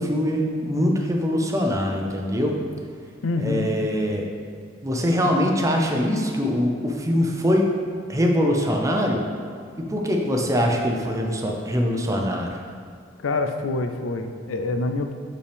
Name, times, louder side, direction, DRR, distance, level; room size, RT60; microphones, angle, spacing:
voice 1, 0.0-2.6 3.4-4.3 4.8-7.7 8.1-9.2 9.8-12.6, equal, 15° right, 1 dB, 0.6 m, -23 dB
voice 2, 3.2-3.7 13.2-15.1, left 3 dB, 85° left, 7 dB, 0.5 m, -26 dB
6.3 x 5.2 x 3.5 m, 2.2 s
head